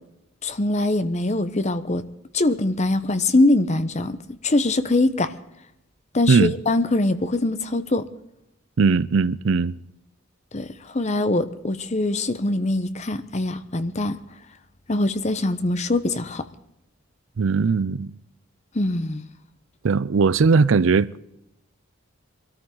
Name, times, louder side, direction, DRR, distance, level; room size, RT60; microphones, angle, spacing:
voice 1, 0.4-2.0 2.3-4.2 4.4-5.3 6.1-8.1 10.5-14.2 14.9-16.4 18.7-19.2, left 2 dB, 35° left, 0.9 m, -23 dB
voice 2, 8.8-9.7 17.4-18.1 19.8-21.2, right 4 dB, 65° right, 0.5 m, -19 dB
23.5 x 13.5 x 3.9 m
head